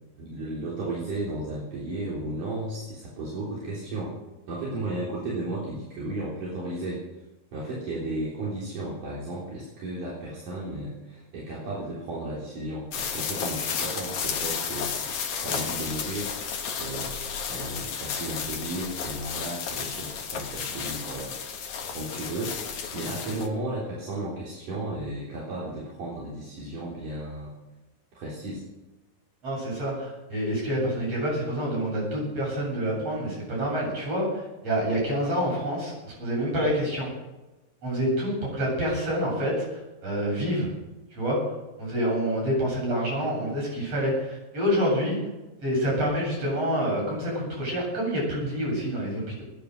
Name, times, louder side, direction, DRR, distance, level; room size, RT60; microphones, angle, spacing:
voice 1, 0.2-4.1 4.5-7.0 7.5-15.1 15.4-16.3 16.8-27.5 28.2-28.6, right 2 dB, 65° right, -5 dB, 5.2 m, -34 dB
sound 1, 12.9-23.5, left 6 dB, 60° left, 3.0 m, -32 dB
voice 2, 29.4-37.1 37.8-40.7 41.1-41.4 41.8-45.2 45.6-49.4, equal, 45° right, -3 dB, 9.2 m, -27 dB
21.0 x 10.0 x 6.5 m, 1.1 s
omnidirectional pair, 3.9 m